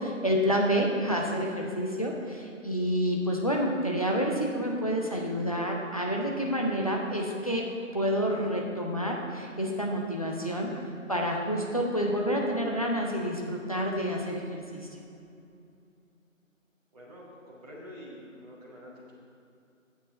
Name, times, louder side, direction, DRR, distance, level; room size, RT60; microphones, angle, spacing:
voice 1, 0.0-7.7 7.9-14.9, equal, 25° left, -1 dB, 0.8 m, -29 dB
voice 2, 16.9-19.1, equal, 30° right, -8 dB, 1.8 m, -47 dB
13.5 x 8.2 x 3.9 m, 2.6 s
figure-of-eight pair, 175°, 40 cm